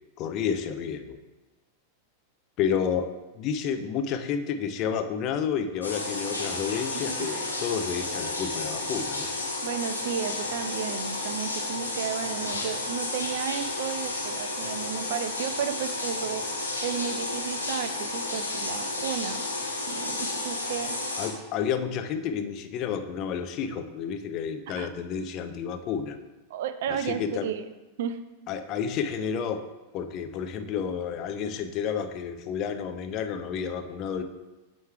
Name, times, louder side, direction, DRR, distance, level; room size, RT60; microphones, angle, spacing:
voice 1, 0.2-1.2 2.6-9.3 21.2-26.2 26.9-27.5 28.5-29.7 29.9-34.2, left 7 dB, 40° left, 8 dB, 0.5 m, -30 dB
sound 1, 5.8-21.3, left 2 dB, 85° left, 1.5 m, -32 dB
voice 2, 6.9-7.4 9.6-19.5 19.9-21.0 24.7-24.9 26.5-27.6 28.0-28.2, right 9 dB, 55° right, 10 dB, 0.4 m, -33 dB
7.8 x 3.2 x 4.5 m, 1.1 s
figure-of-eight pair, 90°, 0 cm